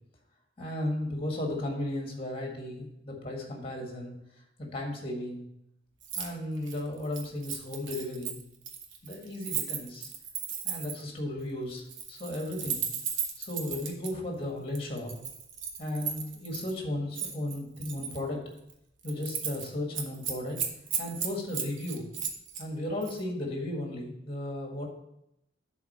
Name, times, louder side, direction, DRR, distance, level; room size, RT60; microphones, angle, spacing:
voice 1, 0.6-4.1 4.6-5.5 6.2-8.4 9.0-10.1 10.6-12.8 13.4-15.1 15.8-18.4 19.0-20.6 21.0-22.1 22.6-24.9, left 1 dB, 30° left, 1 dB, 1.7 m, -35 dB
Keys jangling, 6.0-6.3 6.6-11.1 11.8-14.1 14.8-16.7 17.2-18.2 18.6-18.7 19.0-19.7 19.9-22.6 23.0-23.2, right 7 dB, 75° right, 1.1 m, -35 dB
7.3 x 4.1 x 6.5 m, 0.81 s
head